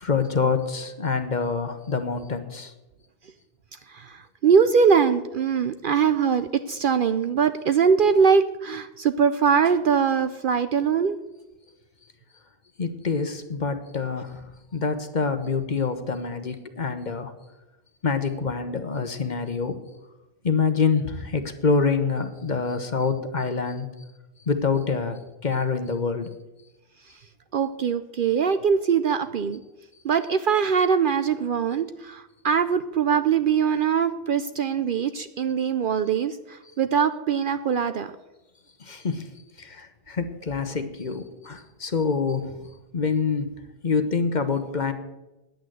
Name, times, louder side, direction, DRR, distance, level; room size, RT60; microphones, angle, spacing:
voice 1, 0.0-2.7 12.8-17.3 18.0-19.8 20.4-23.9 24.5-26.3 38.8-39.3 39.6-42.7 42.9-43.5 43.8-44.9, left 5 dB, 45° left, 9 dB, 1.0 m, -26 dB
voice 2, 3.9-11.2 27.5-29.6 30.0-38.1, right 6 dB, 60° right, 10 dB, 0.6 m, -22 dB
10.0 x 8.7 x 7.8 m, 1.0 s
omnidirectional pair, 1.2 m